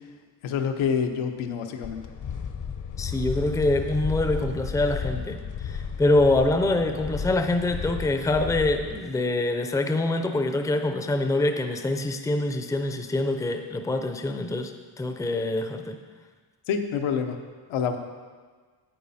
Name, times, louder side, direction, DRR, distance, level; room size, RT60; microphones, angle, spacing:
voice 1, 0.4-2.0 16.7-17.4 17.7-18.0, left 7 dB, 85° left, 6 dB, 1.0 m, -27 dB
sound 1, 1.8-9.0, left 6 dB, 40° left, 0.8 m, -33 dB
voice 2, 3.0-16.0, left 2 dB, 5° left, 6 dB, 0.6 m, -25 dB
9.7 x 8.5 x 4.2 m, 1.5 s
cardioid pair, 105°, 48 cm